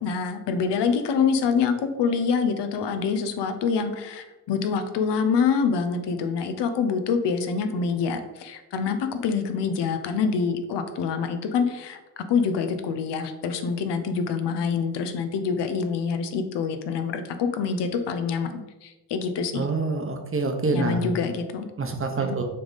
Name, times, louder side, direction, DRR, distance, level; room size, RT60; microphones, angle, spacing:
voice 1, 0.0-19.7 20.7-21.7 22.2-22.4, left 5 dB, 80° left, 8 dB, 0.8 m, -26 dB
voice 2, 19.5-21.1 21.8-22.4, right 3 dB, 30° right, 4 dB, 0.9 m, -26 dB
6.6 x 3.5 x 4.0 m, 1.1 s
cardioid pair, 95°, 41 cm